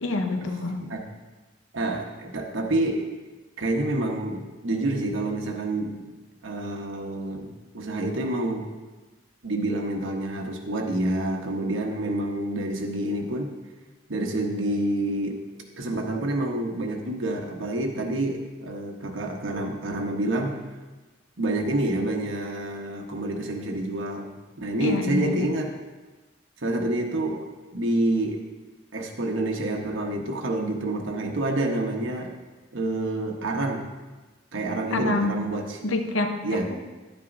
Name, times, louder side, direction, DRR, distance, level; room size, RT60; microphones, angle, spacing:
voice 1, 0.0-0.8 24.8-25.5 34.9-35.4 35.8-36.8, left 2 dB, 90° left, 5 dB, 0.9 m, -27 dB
voice 2, 1.7-3.1 3.6-6.1 6.4-8.7 9.4-13.5 14.1-15.4 15.8-20.6 21.4-25.7 26.6-27.5 27.7-28.4 28.9-32.3 32.7-33.9 34.5-35.8 36.4-36.7, right 1 dB, 85° right, 2 dB, 1.2 m, -28 dB
10.5 x 9.2 x 2.7 m, 1.2 s
head